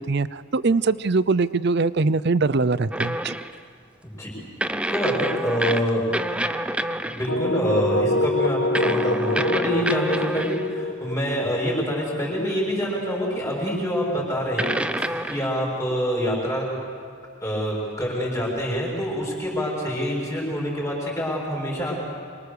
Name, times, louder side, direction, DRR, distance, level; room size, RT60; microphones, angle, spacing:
voice 1, 0.0-3.4, right 3 dB, 50° right, 17 dB, 0.6 m, -22 dB
sound 1, 2.9-3.6 4.6-7.3 8.7-10.7 12.8-12.9 14.6-15.6, right 1 dB, 5° right, 0.6 m, -27 dB
voice 2, 4.9-6.2 6.9-16.7 17.4-22.0, equal, 15° left, -3 dB, 6.1 m, -26 dB
sound 2, 7.3-13.1, left 2 dB, 70° left, 1.1 m, -26 dB
26.5 x 24.0 x 6.8 m, 2.2 s
head